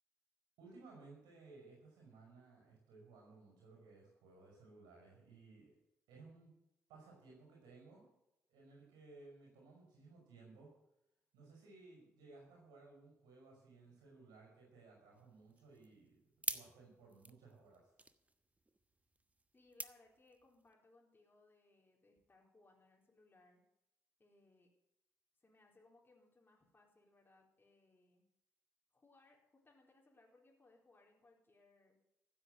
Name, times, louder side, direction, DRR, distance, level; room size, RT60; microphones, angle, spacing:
voice 1, 0.6-5.7 6.1-6.6 6.9-8.1 8.5-10.7 11.3-16.2 16.4-17.9, right 3 dB, 70° right, -1 dB, 5.3 m, -59 dB
sound 1, 15.1-20.7, right 2 dB, 20° right, 1.1 m, -48 dB
voice 2, 19.5-23.6 24.2-24.7 25.4-28.2 28.9-32.0, left 2 dB, 25° left, -2 dB, 4.1 m, -68 dB
15.0 x 8.3 x 8.1 m, 0.84 s
hypercardioid pair, 45°, 7 cm